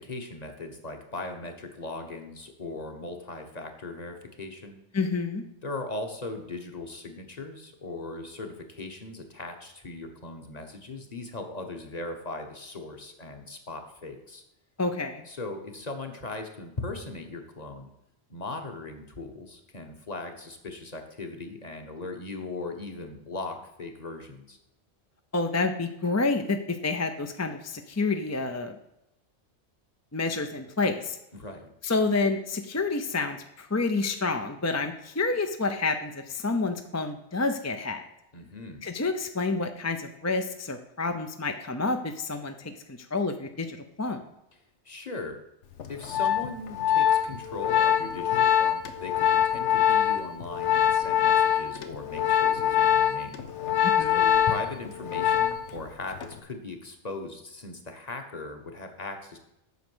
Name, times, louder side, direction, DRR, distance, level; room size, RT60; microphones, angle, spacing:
voice 1, 0.0-4.8 5.6-14.4 15.3-17.9 18.3-24.6 31.3-31.7 38.3-38.8 44.8-45.4 45.9-53.4 54.1-59.4, left 2 dB, 35° left, 4 dB, 1.3 m, -39 dB
voice 2, 4.9-5.4 14.8-15.3 25.3-28.8 30.1-31.2 31.8-38.1 38.8-44.2 53.8-54.2, left 3 dB, 20° left, 6 dB, 0.4 m, -29 dB
Organ, 45.8-55.8 56.1-56.4, left 9 dB, 90° left, 1.1 m, -24 dB
8.4 x 6.4 x 6.2 m, 0.86 s
omnidirectional pair, 1.2 m